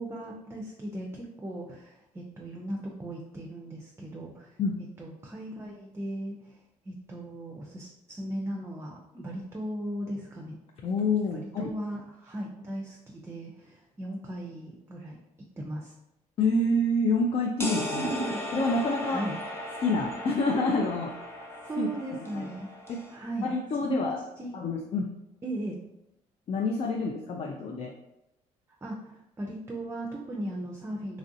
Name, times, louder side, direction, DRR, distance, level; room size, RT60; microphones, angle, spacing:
voice 1, 0.0-4.6 5.0-10.6 11.3-15.2 15.6-15.9 18.0-18.5 19.0-19.4 21.6-22.7 23.1-23.5 23.8-24.6 25.4-25.8 28.8-31.2, right 1 dB, 20° right, 0 dB, 0.5 m, -37 dB
voice 2, 10.8-11.7 16.4-18.1 18.5-19.2 19.8-21.1 21.8-21.9 22.3-22.5 22.9-23.0 23.4-24.2 24.5-25.1 26.5-27.9, left 2 dB, 45° left, 1 dB, 0.4 m, -27 dB
sound 1, 17.6-23.2, left 1 dB, 15° left, 0.7 m, -37 dB
3.1 x 2.5 x 2.6 m, 0.87 s
supercardioid pair, 70°, 14 cm